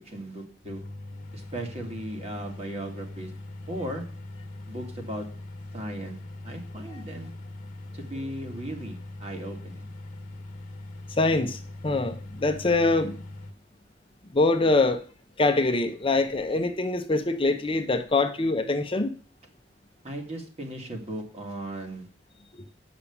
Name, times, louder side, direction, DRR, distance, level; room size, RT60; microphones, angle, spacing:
voice 1, 0.1-0.8 1.3-3.3 3.7-4.0 4.7-5.3 5.7-6.2 6.4-7.3 7.9-9.9 20.0-22.1, right 1 dB, 35° right, 2 dB, 2.2 m, -36 dB
sound 1, 0.6-13.5, left 2 dB, 50° left, 1.4 m, -41 dB
voice 2, 11.2-13.2 14.3-15.0 15.4-19.1, left 2 dB, 30° left, 6 dB, 0.8 m, -24 dB
8.3 x 6.0 x 7.0 m, 0.41 s
head